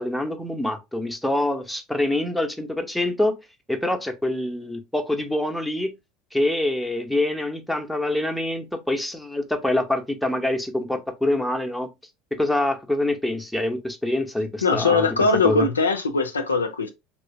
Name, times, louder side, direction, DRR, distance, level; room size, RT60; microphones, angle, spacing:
voice 1, 0.0-3.4 3.7-5.9 6.3-11.9 12.3-15.2 15.4-15.7, left 1 dB, ahead, 0.7 m, -25 dB
voice 2, 14.6-16.9, left 4 dB, 80° left, 0.4 m, -21 dB
3.1 x 3.0 x 2.7 m
figure-of-eight pair, 70°, 0 cm